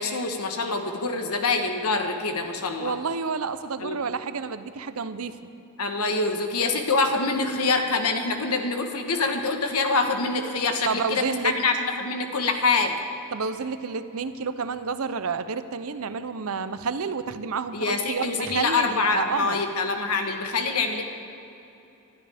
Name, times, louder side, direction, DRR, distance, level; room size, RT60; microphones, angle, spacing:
voice 1, 0.0-2.9 3.8-4.0 5.8-12.9 17.7-21.0, left 3 dB, 85° left, 5 dB, 1.3 m, -25 dB
voice 2, 2.8-5.4 10.9-11.5 13.3-19.6, right 5 dB, 75° right, 11 dB, 0.7 m, -30 dB
22.0 x 12.5 x 3.5 m, 2.9 s
head